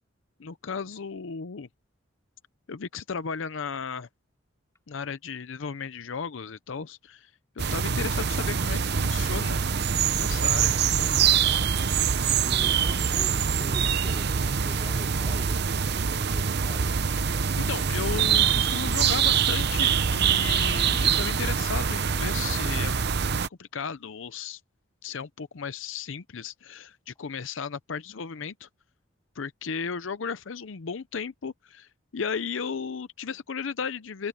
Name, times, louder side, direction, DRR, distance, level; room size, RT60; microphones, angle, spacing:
voice 1, 0.4-1.7 2.7-4.1 4.9-7.3 7.7-9.6 10.2-10.8 17.6-23.0 23.6-24.6 25.0-28.7 29.4-34.3, left 6 dB, 75° left, 0.6 m, -35 dB
sound 1, 7.6-23.5, right 7 dB, 55° right, 0.7 m, -24 dB
voice 2, 12.2-16.9, equal, 15° left, 3.9 m, -44 dB
open air
head